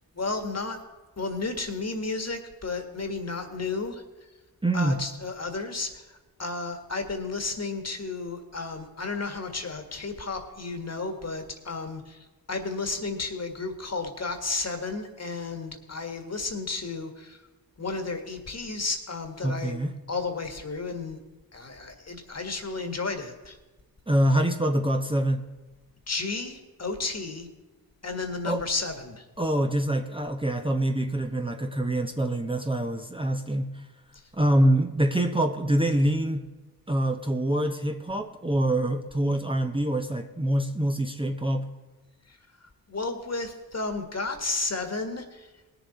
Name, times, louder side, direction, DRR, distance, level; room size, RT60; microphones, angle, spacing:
voice 1, 0.1-0.8 1.2-4.0 4.7-17.4 17.8-19.7 20.1-21.2 21.5-23.6 26.1-27.5 28.0-29.2 42.9-45.5, left 3 dB, 40° left, 6 dB, 1.8 m, -33 dB
voice 2, 4.6-5.0 19.4-19.9 24.1-25.4 28.4-28.6 29.4-33.7 34.3-36.4 36.9-41.6, right 1 dB, 15° right, 4 dB, 0.9 m, -25 dB
19.0 x 7.0 x 4.2 m, 1.2 s
cardioid pair, 45°, 40 cm